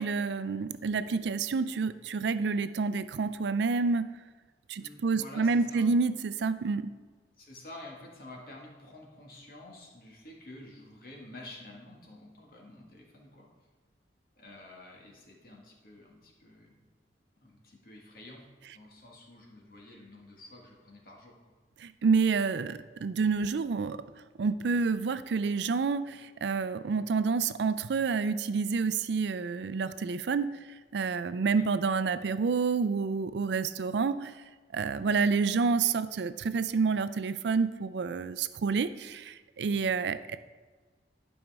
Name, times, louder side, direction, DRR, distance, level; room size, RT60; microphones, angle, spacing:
voice 1, 0.0-4.1 4.7-6.9 21.8-24.0 24.4-30.5 30.9-34.3 34.7-40.4, right 4 dB, 75° right, 12 dB, 0.4 m, -28 dB
voice 2, 4.8-5.9 7.4-13.5 14.4-16.8 17.4-18.4 18.7-21.3 31.6-31.7, left 1 dB, 50° left, -1 dB, 1.6 m, -49 dB
12.0 x 5.3 x 3.5 m, 1.4 s
head